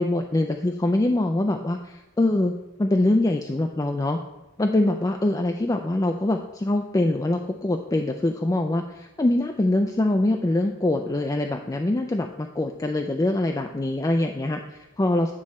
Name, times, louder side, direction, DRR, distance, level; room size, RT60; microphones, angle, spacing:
voice 1, 0.0-2.5 2.8-4.2 4.6-15.3, left 1 dB, 15° left, 4 dB, 0.4 m, -24 dB
9.8 x 6.2 x 4.1 m, 1.1 s
head